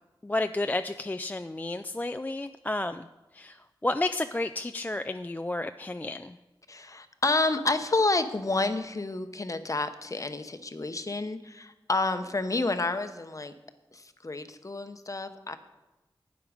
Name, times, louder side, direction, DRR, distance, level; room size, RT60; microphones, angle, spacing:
voice 1, 0.2-3.1 3.3-3.6 3.8-6.3, left 2 dB, 20° left, 9 dB, 0.3 m, -31 dB
voice 2, 6.7-13.5 13.9-15.6, left 2 dB, 40° left, 9 dB, 0.8 m, -29 dB
12.0 x 9.2 x 5.0 m, 1.1 s
wide cardioid pair, 65°, 9 cm